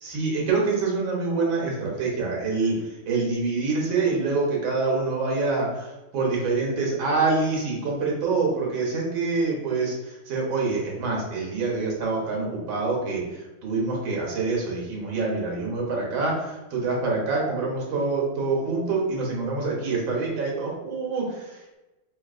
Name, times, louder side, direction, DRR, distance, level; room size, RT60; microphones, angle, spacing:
voice 1, 0.0-21.8, right 3 dB, 85° right, -2 dB, 1.8 m, -26 dB
5.7 x 2.3 x 2.4 m, 1.0 s
omnidirectional pair, 2.1 m